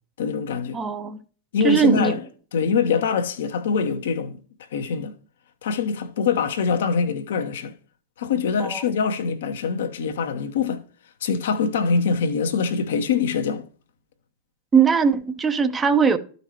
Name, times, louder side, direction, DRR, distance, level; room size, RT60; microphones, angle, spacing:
voice 1, 0.2-0.8 1.5-2.2 2.5-4.4 4.7-5.1 5.6-7.7 8.2-10.8 11.2-13.7, left 5 dB, 60° left, 0.8 m, -24 dB
voice 2, 0.7-1.2 1.6-2.2 8.6-8.8 14.7-16.2, right 6 dB, 20° right, 0.8 m, -20 dB
13.5 x 5.3 x 2.9 m
figure-of-eight pair, 90°, 0 cm